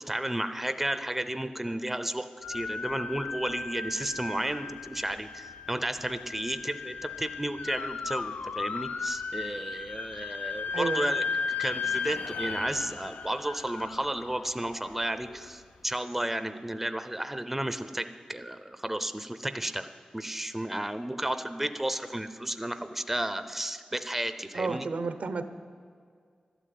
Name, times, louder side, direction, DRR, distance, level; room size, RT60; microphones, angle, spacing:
voice 1, 0.1-19.9 20.1-24.9, right 1 dB, 10° right, 10 dB, 0.6 m, -33 dB
sound 1, 2.4-15.5, left 5 dB, 85° left, 0.6 m, -36 dB
voice 2, 10.7-11.1 24.5-25.4, right 4 dB, 70° right, 10 dB, 0.9 m, -31 dB
12.5 x 10.5 x 9.3 m, 2.1 s
wide cardioid pair, 110°, 3 cm